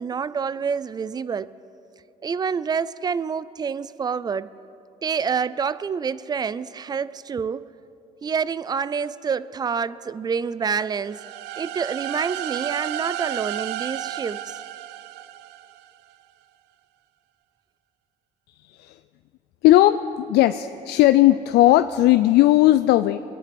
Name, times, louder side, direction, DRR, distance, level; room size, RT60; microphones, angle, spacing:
voice 1, 0.0-1.5 2.2-4.5 5.0-7.7 8.2-11.2 11.6-14.6, right 6 dB, 25° right, 18 dB, 0.4 m, -27 dB
sound 1, 11.1-15.9, right 13 dB, 90° right, 0.4 m, -32 dB
voice 2, 19.6-23.2, left 15 dB, 80° left, 11 dB, 0.4 m, -17 dB
24.0 x 10.0 x 4.3 m, 2.8 s
cardioid pair, 110°, 17 cm